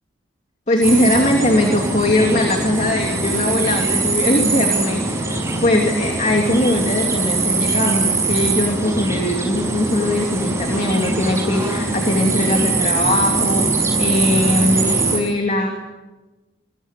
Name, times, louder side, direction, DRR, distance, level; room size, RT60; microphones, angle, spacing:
voice 1, 0.7-13.7 14.0-15.7, left 1 dB, 35° left, 2 dB, 2.8 m, -20 dB
sound 1, 0.8-15.2, right 3 dB, 15° right, 5.9 m, -21 dB
23.5 x 22.0 x 8.4 m, 1.1 s
head